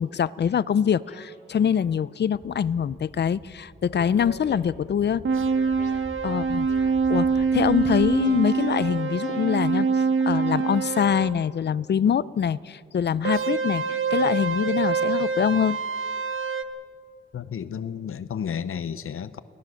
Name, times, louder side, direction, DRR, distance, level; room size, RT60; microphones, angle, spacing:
voice 1, 0.0-5.2 5.9-6.7 7.1-15.8, left 8 dB, 55° left, 18 dB, 0.5 m, -24 dB
sound 1, 1.1-1.8 2.5-3.1 3.9-4.6 5.5-5.9 6.2-6.3 6.7-7.8 8.2-9.4, left 2 dB, 35° left, 3.4 m, -46 dB
sound 2, 2.3-8.2, equal, 15° right, 2.4 m, -45 dB
sound 3, 5.2-11.3 13.2-16.6, right 5 dB, 70° right, 1.0 m, -25 dB
voice 2, 17.3-19.4, left 8 dB, 85° left, 13 dB, 0.7 m, -32 dB
24.5 x 18.5 x 6.4 m, 2.3 s
wide cardioid pair, 155°, 21 cm